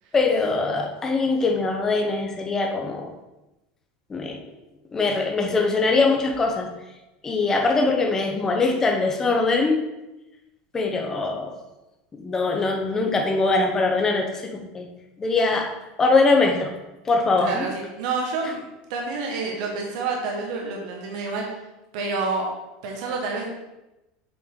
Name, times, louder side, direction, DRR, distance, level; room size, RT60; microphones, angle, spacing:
voice 1, 0.1-3.1 4.1-4.4 4.9-6.7 7.2-9.8 10.7-11.5 12.1-14.9 15.2-15.7 16.0-16.7 17.0-17.7, left 3 dB, 15° left, 2 dB, 0.8 m, -22 dB
voice 2, 17.4-18.6 18.9-21.4 21.9-22.5 22.8-23.5, right 4 dB, 60° right, 0 dB, 1.3 m, -28 dB
7.8 x 4.9 x 3.7 m, 0.99 s
supercardioid pair, 180°, 4 cm